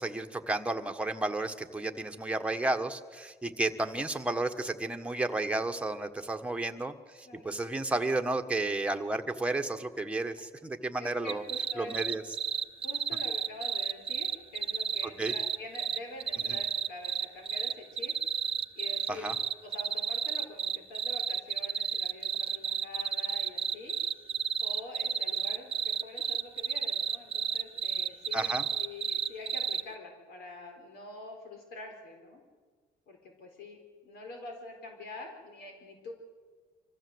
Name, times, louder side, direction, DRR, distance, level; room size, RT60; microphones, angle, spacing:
voice 1, 0.0-11.4 11.8-12.2 15.2-15.3 19.1-19.3 28.3-28.6, right 2 dB, 5° right, 4 dB, 1.5 m, -32 dB
voice 2, 11.0-12.2 12.8-18.1 18.7-19.3 19.6-23.9 24.6-28.5 28.8-32.4 33.1-33.8 34.0-36.1, left 2 dB, 70° left, 3 dB, 4.6 m, -45 dB
sound 1, 11.3-29.8, right 7 dB, 35° right, 0.8 m, -31 dB
25.0 x 15.5 x 8.0 m, 1.5 s
cardioid pair, 110°, 17 cm